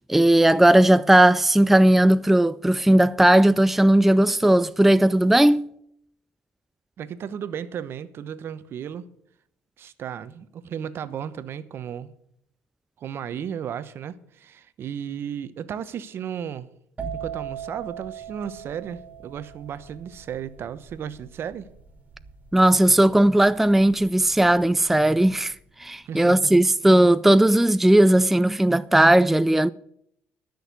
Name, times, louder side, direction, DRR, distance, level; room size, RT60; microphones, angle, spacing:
voice 1, 0.0-5.7 22.5-25.5 25.8-29.7, right 1 dB, 5° right, 0.4 m, -17 dB
voice 2, 7.0-9.1 9.8-12.1 13.0-16.7 17.1-21.7 26.1-26.5, right 8 dB, 55° right, 0.9 m, -34 dB
sound 1, 17.0-24.5 24.8-25.3, right 8 dB, 30° right, 2.7 m, -39 dB
12.5 x 6.5 x 8.1 m
supercardioid pair, 80°, 5 cm